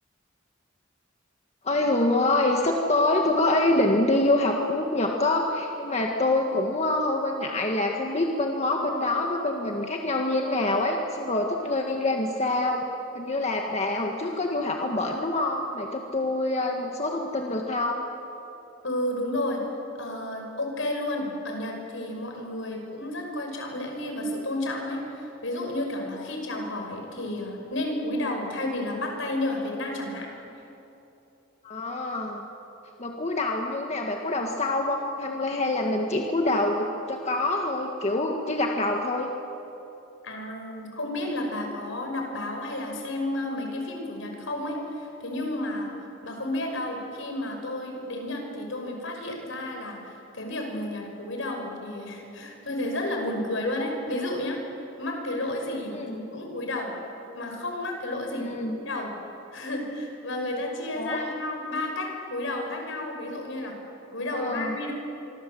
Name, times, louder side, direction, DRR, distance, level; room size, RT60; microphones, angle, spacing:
voice 1, 1.6-12.8 13.1-18.1 31.6-32.4 33.0-39.3 55.9-56.2 58.3-58.8 60.9-61.3 64.3-64.8, left 2 dB, 35° left, 1 dB, 1.7 m, -26 dB
voice 2, 18.8-19.6 20.0-30.3 40.2-45.9 46.2-54.6 55.0-56.9 57.3-59.1 59.5-63.7 64.1-64.9, left 1 dB, 70° left, 2 dB, 5.8 m, -31 dB
25.5 x 25.0 x 7.9 m, 2.9 s
head